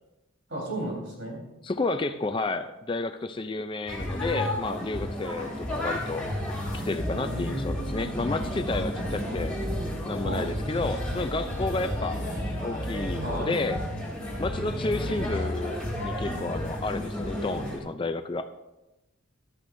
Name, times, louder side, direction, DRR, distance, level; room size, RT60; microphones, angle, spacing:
voice 1, 0.5-1.4 7.1-8.1 10.2-10.5 13.2-13.5, right 1 dB, 60° right, -1 dB, 3.9 m, -34 dB
voice 2, 1.6-6.2 6.9-9.5 10.0-12.2 12.6-13.8 14.4-18.5, left 3 dB, 25° left, 9 dB, 0.4 m, -31 dB
sound 1, 3.9-17.8, left 1 dB, 5° left, 3.1 m, -32 dB
sound 2, 6.9-10.0 10.4-13.4, equal, 30° right, 3.6 m, -38 dB
14.5 x 12.5 x 2.6 m, 0.98 s
head